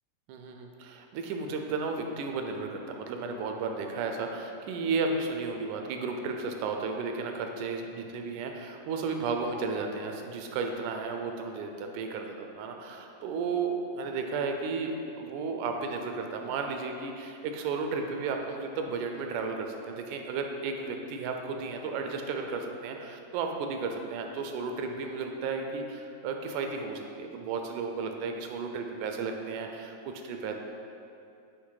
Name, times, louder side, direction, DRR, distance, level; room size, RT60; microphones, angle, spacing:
voice 1, 0.3-30.5, right 4 dB, 85° right, 4 dB, 2.1 m, -33 dB
8.1 x 3.3 x 4.8 m, 2.7 s
omnidirectional pair, 3.4 m